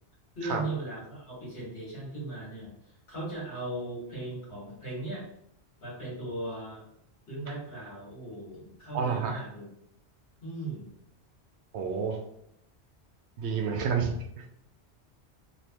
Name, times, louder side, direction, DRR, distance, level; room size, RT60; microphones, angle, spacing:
voice 1, 0.4-2.7 3.1-5.2 5.8-6.8 7.3-9.7 10.4-10.9, right 2 dB, 60° left, -6 dB, 1.8 m, -38 dB
voice 2, 8.9-9.4 11.7-12.2 13.4-14.5, right 6 dB, 85° right, 3 dB, 0.9 m, -29 dB
3.3 x 2.7 x 2.9 m, 0.76 s
omnidirectional pair, 1.1 m